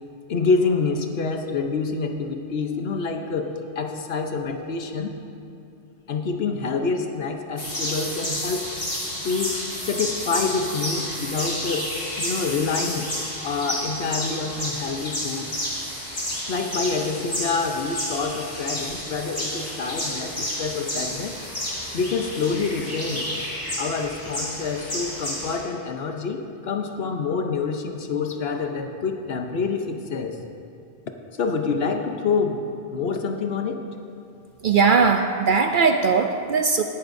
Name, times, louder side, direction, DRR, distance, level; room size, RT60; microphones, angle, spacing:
voice 1, 0.3-5.2 6.1-8.9 9.2-13.1 13.4-15.6 16.5-21.4 21.9-23.3 23.8-30.4 31.4-33.8, left 4 dB, 65° left, 5 dB, 1.0 m, -27 dB
sound 1, 7.6-25.6, equal, 40° left, 2.5 m, -31 dB
voice 2, 34.6-36.8, right 5 dB, 60° right, 6 dB, 0.6 m, -19 dB
17.0 x 11.0 x 2.6 m, 2.7 s
omnidirectional pair, 1.2 m